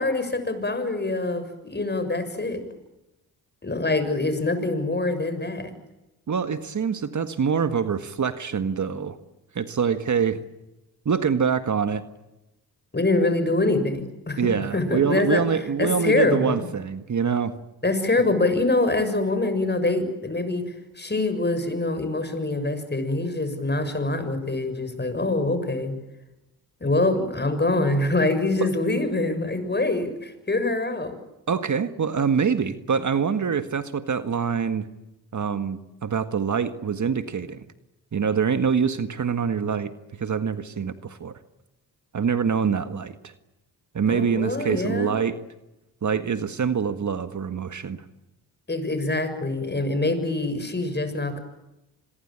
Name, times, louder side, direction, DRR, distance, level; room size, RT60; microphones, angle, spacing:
voice 1, 0.0-2.6 3.6-5.7 12.9-15.4 15.8-16.6 17.8-25.9 26.8-31.2 44.1-45.1 48.7-51.4, left 2 dB, 25° left, 10 dB, 6.8 m, -25 dB
voice 2, 6.3-9.2 9.6-10.4 11.1-12.0 14.4-17.5 28.6-28.7 31.5-34.9 35.3-37.7 38.1-39.9 40.2-41.4 42.1-43.3 43.9-45.4 46.0-48.0, right 6 dB, 50° right, 10 dB, 1.8 m, -25 dB
26.5 x 22.0 x 8.9 m, 0.96 s
supercardioid pair, 60°, 38 cm